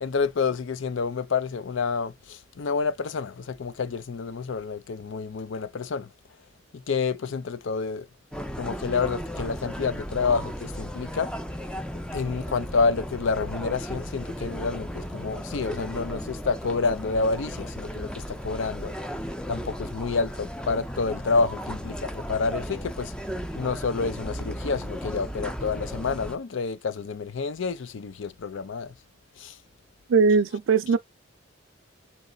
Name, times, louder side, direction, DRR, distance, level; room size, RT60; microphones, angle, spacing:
voice 1, 0.0-2.1 2.6-6.1 6.9-8.0 8.6-11.3 12.1-18.1 18.4-18.9 19.5-23.1 23.6-28.9, left 4 dB, 70° left, 0.5 m, -28 dB
sound 1, 8.3-26.4, equal, 5° left, 0.4 m, -35 dB
voice 2, 30.1-31.0, right 5 dB, 85° right, 0.4 m, -20 dB
4.1 x 3.0 x 3.9 m
head